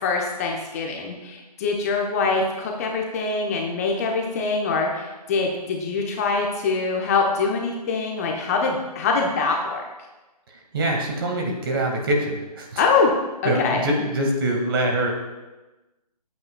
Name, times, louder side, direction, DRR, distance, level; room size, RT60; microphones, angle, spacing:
voice 1, 0.0-9.8 12.8-13.1 13.4-13.8, left 4 dB, 20° left, 1 dB, 1.0 m, -24 dB
voice 2, 10.5-12.8 13.4-15.1, right 1 dB, 35° right, 2 dB, 2.0 m, -24 dB
19.5 x 8.7 x 2.3 m, 1.1 s
figure-of-eight pair, 140°, 21 cm